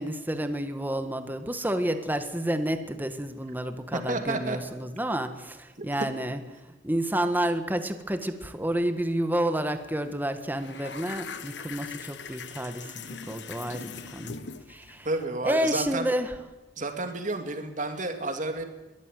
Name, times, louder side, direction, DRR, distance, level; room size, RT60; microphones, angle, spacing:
voice 1, 0.0-6.4 6.8-14.4 14.7-15.1 15.4-16.3, right 1 dB, 10° right, 8 dB, 1.7 m, -30 dB
voice 2, 4.1-4.6 15.0-16.1 16.8-18.6, right 2 dB, 45° right, 5 dB, 2.8 m, -30 dB
sound 1, 9.8-10.0 10.2-15.3, left 5 dB, 80° left, 1.4 m, -41 dB
22.5 x 14.0 x 9.4 m, 1.1 s
head